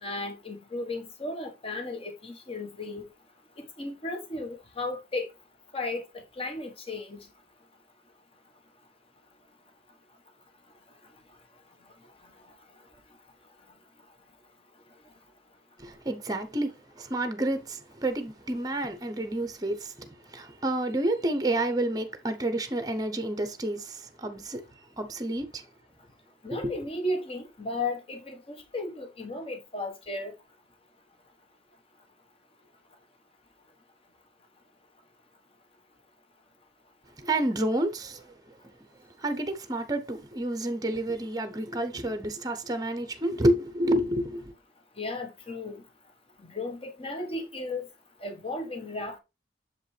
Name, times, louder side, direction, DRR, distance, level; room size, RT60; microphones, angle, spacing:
voice 1, 0.0-3.0 3.6-5.3 5.7-6.0 6.4-7.2 26.4-30.3 45.0-45.8 46.5-47.9 48.2-49.2, left 2 dB, 30° left, 1.3 m, -35 dB
voice 2, 15.8-24.6 25.0-25.6 26.5-26.7 37.2-38.5 39.2-44.5, right 1 dB, 20° right, 0.7 m, -29 dB
6.8 x 5.2 x 3.3 m
head